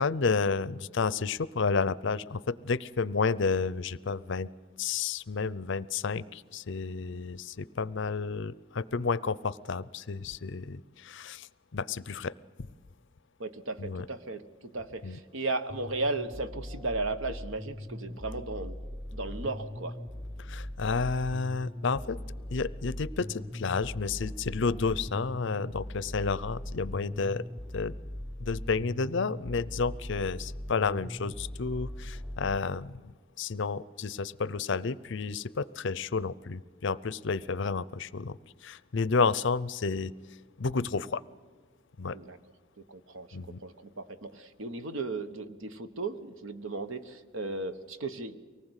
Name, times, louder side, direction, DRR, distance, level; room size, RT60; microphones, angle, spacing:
voice 1, 0.0-4.5 4.8-11.5 11.7-12.3 13.8-14.1 15.0-15.2 20.5-22.2 22.5-27.4 27.7-27.9 28.4-33.0 33.4-40.1 40.6-41.2 42.0-42.2 43.3-43.6, left 4 dB, 60° left, 19 dB, 0.6 m, -31 dB
voice 2, 13.4-14.4 14.7-18.8 19.1-20.0 42.1-42.4 42.9-48.4, right 3 dB, 65° right, 11 dB, 1.2 m, -35 dB
sound 1, 15.7-32.6, left 1 dB, ahead, 0.6 m, -40 dB
24.5 x 19.0 x 8.2 m, 1.5 s
head